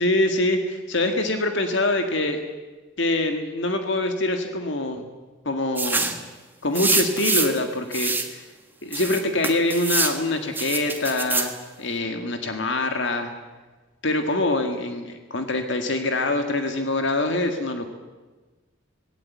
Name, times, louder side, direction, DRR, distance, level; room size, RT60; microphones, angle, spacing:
voice 1, 0.0-2.4 3.0-5.1 5.5-6.2 6.6-8.5 8.8-13.3 14.0-17.9, left 2 dB, 60° left, 6 dB, 1.8 m, -24 dB
sound 1, 5.8-6.2 6.8-7.6 7.9-8.3 8.9-10.2 10.6-11.5, right 3 dB, 10° right, 1.5 m, -25 dB
19.0 x 17.0 x 9.2 m, 1.3 s
head